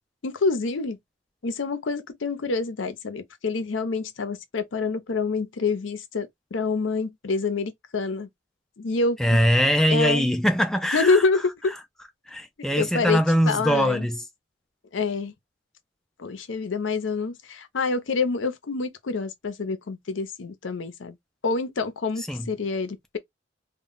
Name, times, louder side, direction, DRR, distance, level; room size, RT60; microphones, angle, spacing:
voice 1, 0.2-1.0 1.4-8.3 8.8-9.2 9.9-10.3 10.9-11.7 12.7-14.1 14.9-15.3 16.2-21.1 21.4-23.2, left 4 dB, 90° left, 0.6 m, -27 dB
voice 2, 9.2-11.2 12.3-14.2 22.3-22.5, equal, 5° left, 0.3 m, -22 dB
2.2 x 2.1 x 3.8 m
head